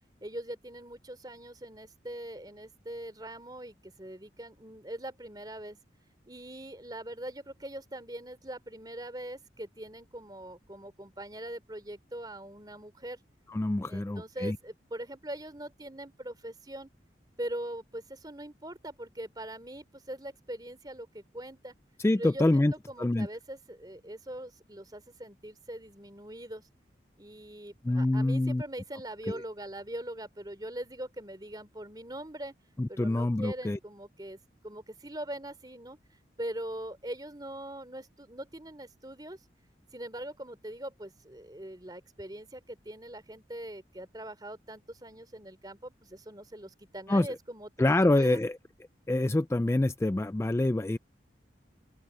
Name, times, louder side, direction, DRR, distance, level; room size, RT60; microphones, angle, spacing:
voice 1, 0.2-5.8 6.3-13.2 13.9-16.9 17.4-21.7 22.2-26.6 27.2-32.5 32.9-34.4 34.6-36.0 36.4-39.4 39.9-48.4, right 1 dB, 20° right, 3.4 m, -42 dB
voice 2, 13.5-14.6 22.0-22.7 23.0-23.3 27.8-28.6 29.3-29.4 32.8-33.8 47.1-47.3 47.8-48.6 49.1-51.0, left 2 dB, 15° left, 0.3 m, -26 dB
open air
head